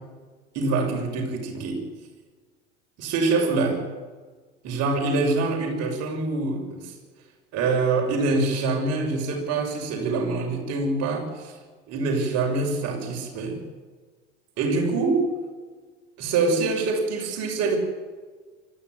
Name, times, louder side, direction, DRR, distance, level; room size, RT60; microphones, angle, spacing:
voice 1, 0.5-1.8 3.0-3.8 4.6-6.9 7.5-11.5 11.9-13.6 14.6-15.2 16.2-17.8, right 3 dB, 45° right, 2 dB, 6.4 m, -25 dB
25.0 x 14.0 x 9.6 m, 1.4 s
figure-of-eight pair, 80°, 37 cm